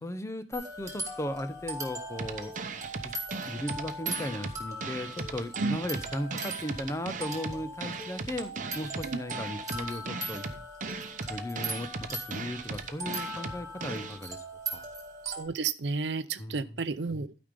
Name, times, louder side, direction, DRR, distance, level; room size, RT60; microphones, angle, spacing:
voice 1, 0.0-2.5 3.0-3.1 3.5-10.5 11.3-14.4 14.7-14.8 16.4-16.7, left 1 dB, 15° left, 11 dB, 0.7 m, -36 dB
sound 1, 0.5-15.5, right 1 dB, 20° right, 2.4 m, -40 dB
sound 2, 2.2-14.2, right 4 dB, 45° right, 0.9 m, -38 dB
voice 2, 15.2-17.4, right 4 dB, 70° right, 15 dB, 0.6 m, -32 dB
12.0 x 5.2 x 5.2 m, 0.32 s
head